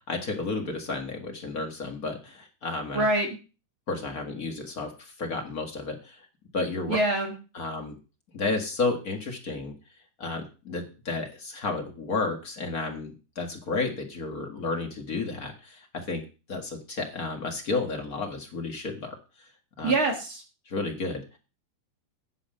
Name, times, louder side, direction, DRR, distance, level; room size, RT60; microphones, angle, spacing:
voice 1, 0.1-3.1 3.9-6.2 6.5-7.0 7.5-7.9 8.3-9.7 10.2-16.2 16.5-19.5 19.8-19.9 20.6-21.4, left 3 dB, 45° left, 2 dB, 1.1 m, -32 dB
voice 2, 2.9-3.3 6.9-7.3 19.8-20.4, right 2 dB, 45° right, 2 dB, 1.8 m, -24 dB
9.8 x 5.1 x 7.6 m, 0.33 s
omnidirectional pair, 4.3 m